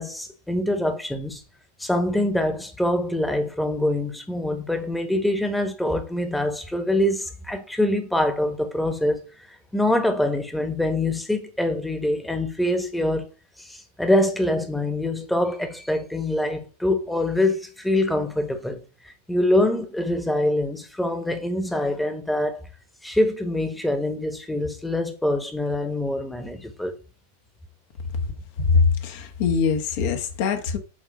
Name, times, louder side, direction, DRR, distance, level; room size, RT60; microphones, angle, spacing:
voice 1, 0.0-1.4 1.8-9.2 9.7-13.3 13.6-22.6 23.0-26.9, left 1 dB, 5° left, 1.3 m, -24 dB
voice 2, 28.7-30.8, left 5 dB, 50° left, 1.3 m, -22 dB
8.5 x 3.7 x 5.2 m
figure-of-eight pair, 90°, 0 cm